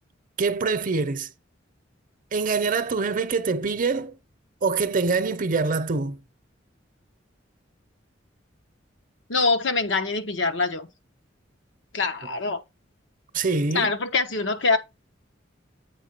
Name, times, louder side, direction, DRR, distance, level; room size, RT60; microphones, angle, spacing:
voice 1, 0.4-1.3 2.3-4.2 4.6-6.2 13.3-13.9, right 4 dB, 45° right, 0.7 m, -24 dB
voice 2, 9.3-10.9 11.9-12.6 13.7-14.8, left 3 dB, 85° left, 1.0 m, -24 dB
8.1 x 4.6 x 4.4 m
head